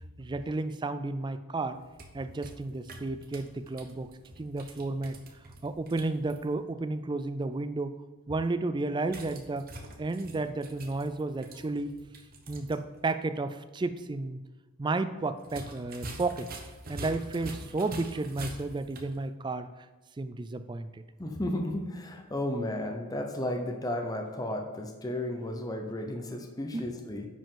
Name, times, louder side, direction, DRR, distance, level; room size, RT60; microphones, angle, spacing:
voice 1, 0.2-1.8 2.1-5.2 5.6-7.9 8.3-9.7 10.0-11.9 12.5-14.4 14.8-16.5 16.9-19.7 20.2-21.0 26.7-26.9, right 2 dB, 20° right, 11 dB, 0.3 m, -32 dB
sound 1, 1.7-6.4 9.0-12.8 13.1-13.2 15.4-19.2, right 2 dB, 40° right, 0.9 m, -45 dB
voice 2, 21.2-27.3, left 1 dB, 15° left, 3 dB, 0.7 m, -33 dB
9.8 x 5.1 x 3.8 m, 1.3 s
head